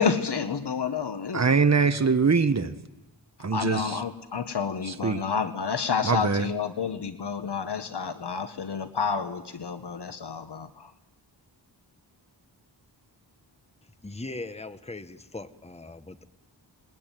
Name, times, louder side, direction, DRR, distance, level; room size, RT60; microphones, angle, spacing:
voice 1, 0.0-1.4 3.5-10.9, left 6 dB, 60° left, 1.4 m, -29 dB
voice 2, 1.3-2.7 3.4-4.0 4.8-5.2 6.0-6.5, right 5 dB, 35° right, 1.5 m, -23 dB
sound 1, 1.8-3.5, right 1 dB, 45° left, 2.1 m, -51 dB
voice 3, 14.0-16.2, left 2 dB, 15° left, 1.2 m, -39 dB
27.5 x 21.5 x 9.2 m
wide cardioid pair, 115°, 45 cm